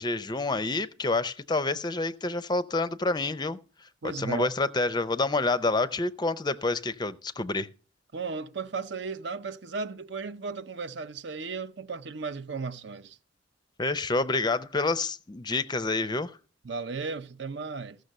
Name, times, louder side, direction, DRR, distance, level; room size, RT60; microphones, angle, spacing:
voice 1, 0.0-7.7 13.8-16.4, left 3 dB, 20° left, 0.5 m, -28 dB
voice 2, 4.0-4.5 8.1-13.2 16.6-18.0, right 4 dB, 65° right, 0.7 m, -35 dB
15.0 x 6.5 x 6.5 m
head